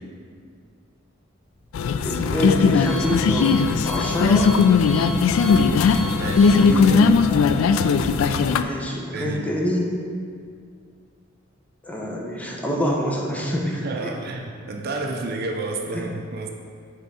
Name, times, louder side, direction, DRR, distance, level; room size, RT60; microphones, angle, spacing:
Alarm, 1.4-7.8, left 1 dB, 35° left, 1.6 m, -38 dB
sound 1, 1.7-8.6, left 5 dB, 85° left, 0.3 m, -18 dB
voice 1, 2.0-4.6 6.5-7.1 8.6-9.9 11.8-14.1 15.9-16.0, equal, 5° left, -2 dB, 0.7 m, -26 dB
voice 2, 5.6-7.0 9.1-9.5 13.8-16.5, right 2 dB, 50° right, 2 dB, 0.5 m, -31 dB
7.7 x 3.6 x 4.1 m, 2.1 s
head